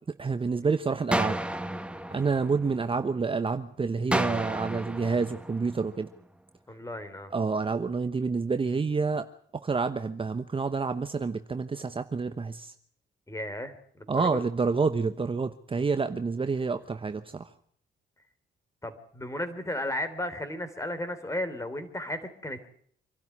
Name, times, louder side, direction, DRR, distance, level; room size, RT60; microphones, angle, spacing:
voice 1, 0.2-1.4 2.1-6.1 7.3-9.3 9.6-12.7 14.1-17.5, right 4 dB, 25° right, 9 dB, 1.0 m, -28 dB
sound 1, 1.1-3.2 4.1-6.2, right 1 dB, 5° right, 1.4 m, -32 dB
voice 2, 6.7-7.3 13.3-14.5 18.8-22.7, left 1 dB, 15° left, 10 dB, 3.6 m, -34 dB
26.0 x 12.0 x 9.7 m, 0.62 s
cardioid pair, 90°, 20 cm